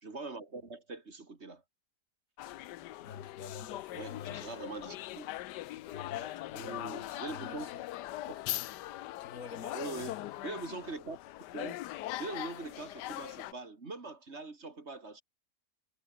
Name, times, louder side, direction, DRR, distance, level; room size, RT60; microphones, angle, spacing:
voice 1, 0.0-1.6 3.9-5.3 6.5-7.7 8.3-8.4 9.7-10.2 10.4-11.2 11.5-11.7 12.2-15.2, right 3 dB, 40° right, 2.5 m, -42 dB
sound 1, 2.4-13.5, left 15 dB, 80° left, 1.2 m, -41 dB
voice 2, 3.0-4.5 5.5-7.8 9.2-10.3, left 6 dB, 50° left, 1.8 m, -48 dB
omnidirectional pair, 1.8 m